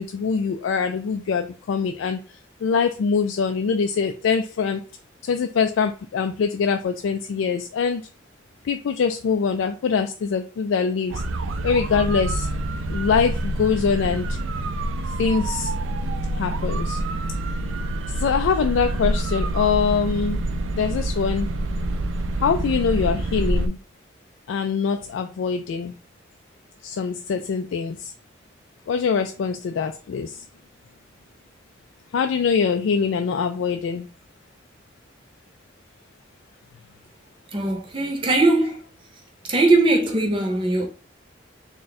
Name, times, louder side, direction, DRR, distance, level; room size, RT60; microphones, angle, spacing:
voice 1, 0.0-2.2 2.6-4.8 5.3-8.0 8.6-11.2 11.6-12.5 12.9-14.4 15.2-15.7 16.4-17.0 18.2-20.4 20.8-21.5 22.4-23.8 24.5-25.9 26.8-28.1 28.9-30.3 32.1-34.1, left 6 dB, 85° left, 0.3 m, -23 dB
sound 1, 11.1-23.7, right 1 dB, 90° right, 0.4 m, -26 dB
voice 2, 37.5-38.8 39.4-40.9, right 2 dB, 25° right, 0.7 m, -20 dB
3.6 x 2.2 x 4.0 m
head